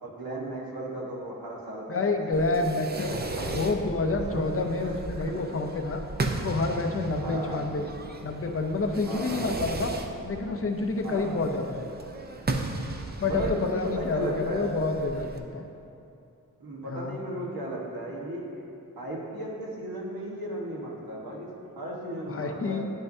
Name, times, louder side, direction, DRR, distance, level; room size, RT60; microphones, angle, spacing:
voice 1, 0.0-3.5 4.3-5.4 7.1-7.6 9.1-9.5 11.0-11.4 13.2-14.7 16.6-18.7 19.0-21.5 21.8-22.8, right 1 dB, 75° right, -3 dB, 1.3 m, -35 dB
voice 2, 1.9-3.1 3.5-6.0 6.4-7.9 8.2-9.9 10.2-11.9 13.2-15.7 16.9-17.2 22.3-22.9, left 3 dB, 40° left, 4 dB, 0.6 m, -28 dB
Fireworks, 2.3-15.4, right 2 dB, 25° right, 0.5 m, -36 dB
10.5 x 5.5 x 2.7 m, 2.7 s
wide cardioid pair, 80°, 36 cm